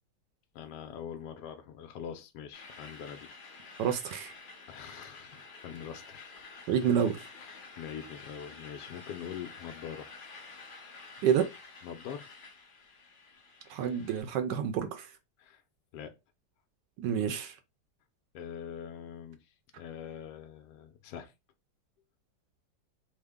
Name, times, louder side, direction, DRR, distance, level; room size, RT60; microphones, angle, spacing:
voice 1, 0.5-3.3 4.7-6.3 7.3-10.7 11.8-12.3 15.4-15.6 15.9-16.2 18.3-21.3, left 8 dB, 75° left, 1.1 m, -44 dB
sound 1, 2.5-14.2, left 4 dB, 60° left, 0.5 m, -50 dB
voice 2, 3.8-4.3 6.7-7.2 11.2-11.5 13.7-15.1 17.0-17.5, right 8 dB, 75° right, 1.2 m, -28 dB
3.5 x 2.1 x 3.5 m
omnidirectional pair, 1.9 m